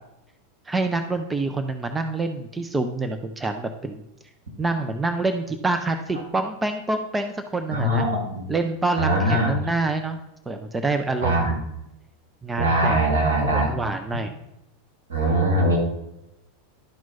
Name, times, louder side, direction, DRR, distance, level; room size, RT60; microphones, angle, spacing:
voice 1, 0.7-4.0 4.6-8.1 8.5-10.2 10.5-11.5 12.4-13.2 13.5-14.3, right 3 dB, 15° right, 6 dB, 0.6 m, -26 dB
voice 2, 7.7-8.5 9.0-9.5 11.2-11.6 12.6-13.7 15.1-15.8, right 1 dB, 70° right, -2 dB, 3.0 m, -21 dB
11.5 x 4.6 x 4.1 m, 0.86 s
figure-of-eight pair, 85°, 0 cm